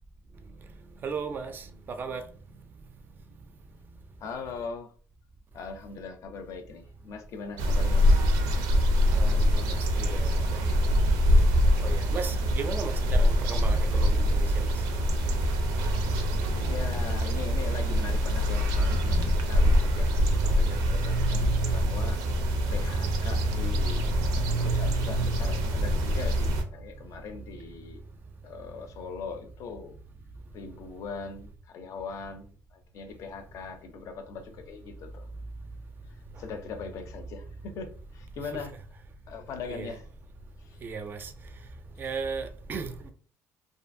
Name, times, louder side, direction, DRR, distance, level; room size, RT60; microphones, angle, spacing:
voice 1, 1.0-2.3 9.1-10.7 11.8-14.7 39.7-39.9 40.8-41.3 42.0-43.1, right 5 dB, 30° right, 0.4 m, -36 dB
voice 2, 4.2-4.9 5.5-8.1 16.7-22.2 22.7-24.1 24.6-28.0 28.4-30.0 30.5-35.2 36.4-38.7 39.3-40.0 40.6-40.8, left 5 dB, 55° left, 0.5 m, -40 dB
sound 1, 7.6-26.6, equal, 90° right, 0.5 m, -24 dB
2.6 x 2.5 x 2.5 m
cardioid pair, 145°, 7 cm